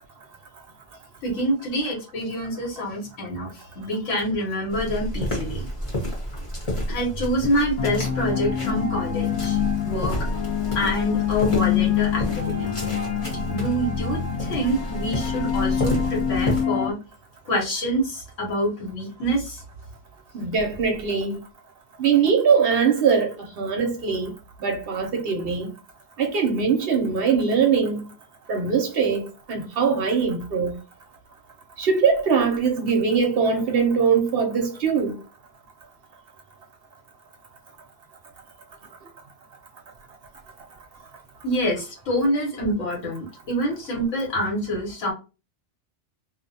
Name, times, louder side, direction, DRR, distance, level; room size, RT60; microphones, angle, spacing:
voice 1, 1.2-5.7 6.9-10.1 10.7-12.7 13.5-17.0 17.4-19.6 41.4-45.1, equal, 85° left, 1.3 m, -26 dB
sound 1, 4.7-16.6, equal, 30° left, 0.8 m, -31 dB
sound 2, 7.8-16.9, left 9 dB, 60° left, 0.4 m, -26 dB
voice 2, 20.3-21.4 22.0-24.3 24.6-25.7 26.2-28.0 28.5-30.7 31.8-35.2, right 6 dB, 60° right, 0.7 m, -22 dB
2.4 x 2.1 x 2.6 m
omnidirectional pair, 1.2 m